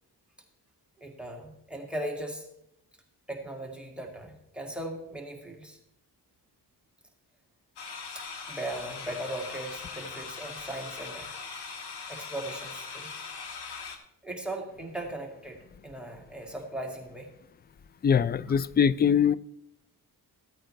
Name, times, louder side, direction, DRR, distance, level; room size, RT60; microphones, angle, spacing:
voice 1, 1.0-2.5 3.3-5.8 8.1-11.3 12.1-13.1 14.2-17.3, right 1 dB, ahead, 2.0 m, -38 dB
sound 1, 7.8-14.0, left 5 dB, 70° left, 1.5 m, -40 dB
voice 2, 18.0-19.3, left 7 dB, 25° left, 0.3 m, -22 dB
15.0 x 8.7 x 3.2 m
cardioid pair, 75°, 40 cm